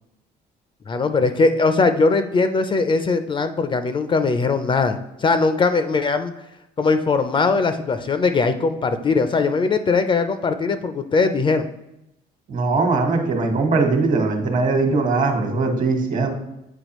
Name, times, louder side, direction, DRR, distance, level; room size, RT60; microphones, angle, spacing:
voice 1, 0.9-6.3 6.8-11.7, left 4 dB, 30° left, 9 dB, 0.4 m, -20 dB
voice 2, 12.5-16.3, right 3 dB, 50° right, 4 dB, 1.3 m, -20 dB
8.0 x 4.7 x 3.0 m, 0.88 s
cardioid pair, 110°, 17 cm